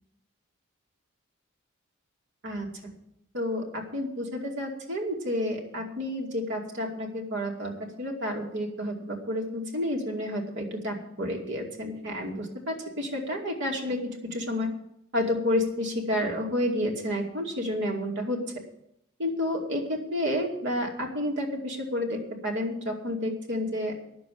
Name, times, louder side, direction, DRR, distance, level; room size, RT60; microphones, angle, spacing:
voice 1, 2.4-2.9 3.3-14.7 15.1-18.4 19.2-23.9, left 1 dB, 60° right, 1 dB, 2.5 m, -30 dB
10.5 x 7.1 x 9.3 m, 0.78 s
head